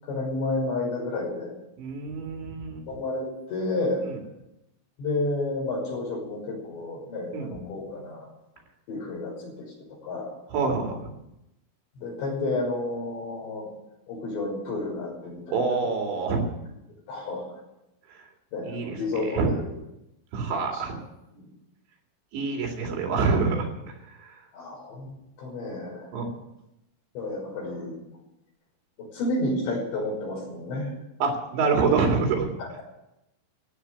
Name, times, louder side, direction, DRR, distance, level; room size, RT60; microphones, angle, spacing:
voice 1, 0.0-1.5 2.9-4.0 5.0-8.3 8.9-9.7 10.0-10.4 12.0-13.7 14.1-15.8 17.1-17.6 18.5-19.7 20.7-21.0 21.3-21.4 24.5-25.1 25.4-26.2 27.2-28.0 29.0-30.9 32.6-32.8, left 2 dB, 65° left, -2 dB, 7.7 m, -31 dB
voice 2, 1.8-2.8 7.3-7.5 10.5-11.0 15.5-16.5 18.6-19.0 19.3-19.6 20.3-21.0 22.3-23.7 26.1-26.3 31.2-32.5, right 4 dB, 65° right, 2 dB, 4.5 m, -26 dB
15.0 x 8.3 x 9.9 m, 0.89 s
omnidirectional pair, 5.6 m